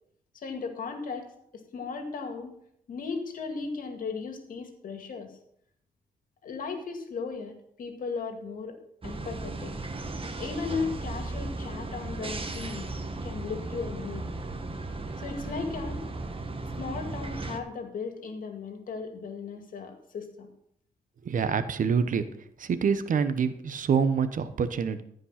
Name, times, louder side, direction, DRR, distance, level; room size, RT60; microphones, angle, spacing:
voice 1, 0.3-2.6 2.9-5.3 6.4-8.8 9.0-9.7 10.2-12.9 13.2-14.3 15.2-16.0 16.8-20.5, left 4 dB, 70° left, 5 dB, 2.1 m, -36 dB
sound 1, 9.0-17.6, right 2 dB, 40° right, 1.5 m, -36 dB
voice 2, 21.2-22.2 22.6-25.0, right 6 dB, 65° right, 12 dB, 1.0 m, -26 dB
14.0 x 5.3 x 5.8 m, 0.71 s
cardioid pair, 55°, 15 cm